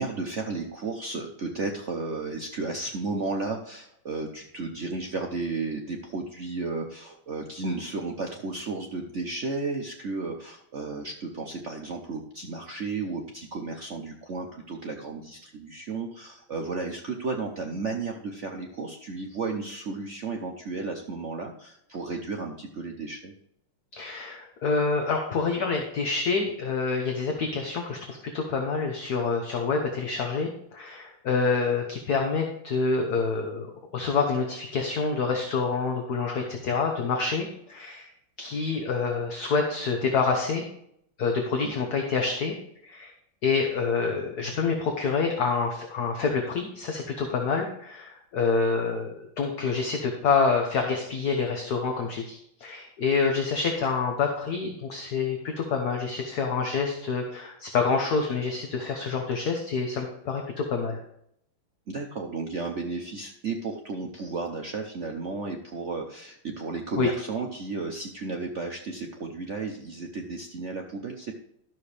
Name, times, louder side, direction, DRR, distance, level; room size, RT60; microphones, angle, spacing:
voice 1, 0.0-23.3 41.6-41.7 61.9-71.3, right 3 dB, 60° right, 2 dB, 0.7 m, -33 dB
voice 2, 23.9-38.1 38.4-40.6 41.2-42.5 42.8-43.1 43.4-61.0 67.0-67.1, left 4 dB, 55° left, 3 dB, 1.4 m, -27 dB
12.0 x 7.0 x 3.3 m, 0.72 s
omnidirectional pair, 2.3 m